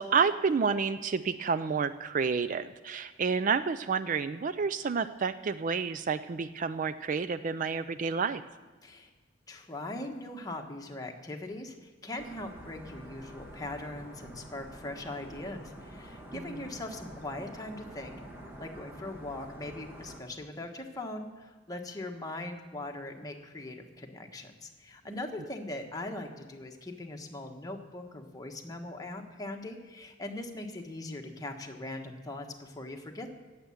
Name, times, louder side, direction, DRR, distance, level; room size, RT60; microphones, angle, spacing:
voice 1, 0.0-8.4 16.3-16.6, right 5 dB, 45° right, 13 dB, 0.4 m, -29 dB
voice 2, 9.5-18.2 18.6-33.4, left 2 dB, 20° left, 2 dB, 1.3 m, -40 dB
sound 1, 12.2-20.2, equal, 15° right, 1.7 m, -47 dB
18.0 x 7.6 x 7.1 m, 1.4 s
head